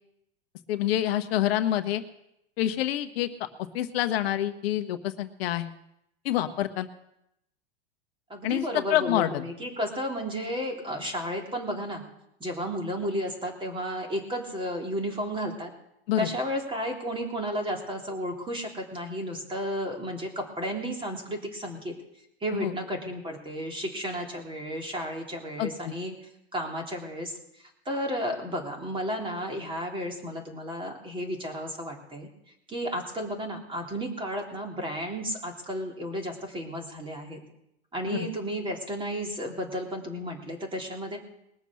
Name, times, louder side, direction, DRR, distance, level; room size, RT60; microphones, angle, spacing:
voice 1, 0.7-2.0 2.6-3.5 3.7-5.7 6.2-6.9 8.4-9.4 16.1-16.3 22.6-22.7 25.6-25.9 38.1-38.3, left 12 dB, 70° left, 9 dB, 1.1 m, -27 dB
voice 2, 8.3-12.0 12.4-15.7 16.2-21.9 22.4-26.1 26.5-27.4 27.8-32.3 32.7-37.4 37.9-41.2, equal, 15° right, 1 dB, 3.3 m, -33 dB
21.0 x 6.9 x 6.3 m, 0.81 s
hypercardioid pair, 115°, 31 cm